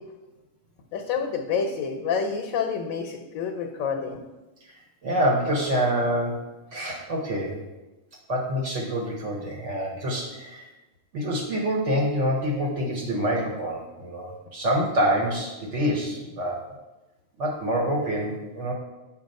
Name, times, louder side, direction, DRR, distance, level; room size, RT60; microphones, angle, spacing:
voice 1, 0.9-4.2, left 6 dB, 85° left, 3 dB, 1.0 m, -28 dB
voice 2, 4.6-6.4 6.7-7.6 8.3-10.7 11.1-16.6 17.4-18.7, equal, 65° right, -1 dB, 1.1 m, -26 dB
7.1 x 2.6 x 5.2 m, 1.1 s
omnidirectional pair, 1.4 m